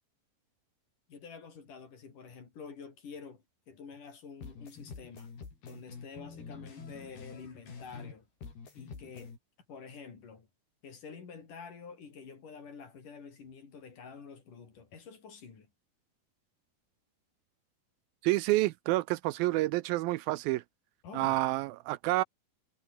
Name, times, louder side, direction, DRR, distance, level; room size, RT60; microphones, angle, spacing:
voice 1, 1.1-5.3 5.7-8.3 8.7-9.3 9.7-10.5 10.8-15.7 21.0-21.4, left 5 dB, 55° left, 5.6 m, -48 dB
sound 1, 4.4-8.2 8.4-9.4, left 5 dB, 80° left, 7.8 m, -47 dB
voice 2, 18.2-20.6 21.1-22.2, right 18 dB, 80° right, 2.3 m, -28 dB
omnidirectional pair, 4.4 m